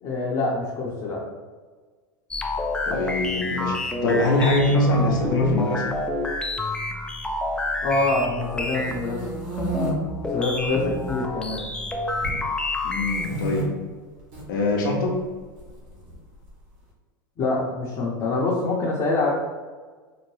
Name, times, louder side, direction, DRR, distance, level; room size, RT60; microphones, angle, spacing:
voice 1, 0.0-1.2 7.8-9.2 10.3-11.7 17.4-19.3, left 3 dB, 40° left, -5 dB, 0.7 m, -25 dB
sound 1, 2.3-13.5, left 2 dB, 10° left, 0.3 m, -29 dB
voice 2, 2.8-6.0 12.8-13.7 14.5-15.2, left 2 dB, 85° left, -1 dB, 0.6 m, -23 dB
sound 2, 8.5-9.9 10.6-11.2 11.5-12.4 13.0-13.6 14.2-14.4 15.6-16.5, right 2 dB, 60° right, 1.2 m, -32 dB
2.7 x 2.1 x 3.1 m, 1.4 s
supercardioid pair, 110°, 11 cm